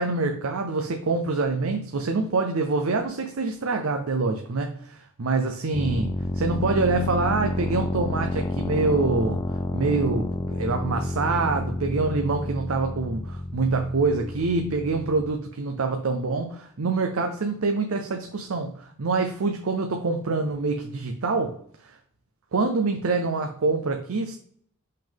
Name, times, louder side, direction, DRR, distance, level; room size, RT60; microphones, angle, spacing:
voice 1, 0.0-21.6 21.8-22.0 22.5-24.4, right 3 dB, 80° right, 5 dB, 0.6 m, -26 dB
sound 1, 5.7-15.3, left 1 dB, 20° left, 0.4 m, -30 dB
5.7 x 5.2 x 3.6 m, 0.63 s
head